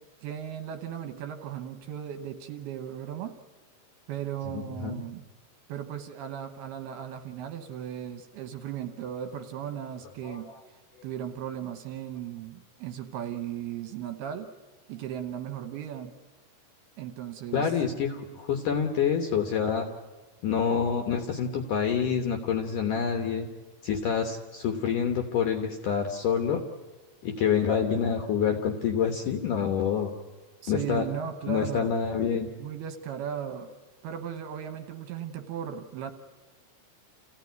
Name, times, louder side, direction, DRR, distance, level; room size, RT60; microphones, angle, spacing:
voice 1, 0.2-3.3 4.1-5.2 5.7-10.5 11.0-14.5 14.9-16.1 17.0-17.7 30.6-31.9 32.6-33.7 34.0-36.1, right 9 dB, 70° right, 7 dB, 2.7 m, -36 dB
voice 2, 4.5-5.0 10.2-10.4 17.5-19.9 20.4-23.5 23.8-26.6 27.2-30.1 30.7-31.1 31.5-32.5, left 7 dB, 65° left, 4 dB, 2.1 m, -27 dB
28.0 x 16.0 x 9.4 m, 1.2 s
omnidirectional pair, 5.3 m